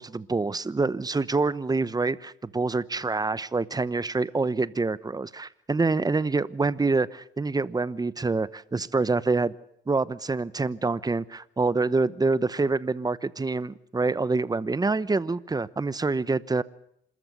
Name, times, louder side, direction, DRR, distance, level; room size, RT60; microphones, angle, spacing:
voice 1, 0.0-9.5 9.9-16.6, right 3 dB, 20° right, 18 dB, 1.0 m, -26 dB
27.0 x 14.0 x 9.5 m, 0.73 s
cardioid pair, 90°, 20 cm